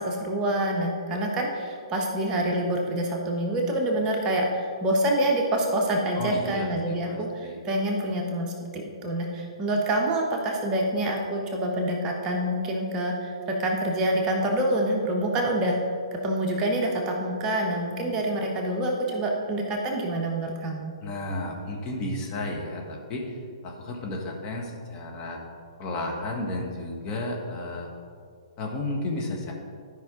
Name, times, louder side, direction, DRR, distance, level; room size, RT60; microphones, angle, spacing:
voice 1, 0.0-15.8 16.1-20.9, right 1 dB, 25° right, 0 dB, 1.2 m, -26 dB
voice 2, 6.1-7.6 21.0-23.4 23.6-25.4 25.8-27.9 28.6-29.5, left 2 dB, 30° left, -1 dB, 1.6 m, -33 dB
12.5 x 5.5 x 3.9 m, 2.2 s
figure-of-eight pair, 125°, 3 cm